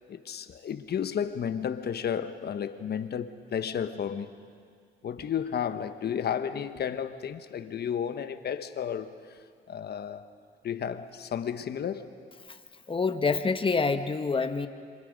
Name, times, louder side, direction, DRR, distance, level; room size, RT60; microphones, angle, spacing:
voice 1, 0.1-4.3 5.0-9.1 9.7-10.2 10.6-12.2, left 8 dB, 55° left, 1.2 m, -32 dB
voice 2, 12.9-14.7, left 4 dB, 25° left, 1.3 m, -26 dB
26.5 x 25.0 x 5.3 m
cardioid pair, 90°, 20 cm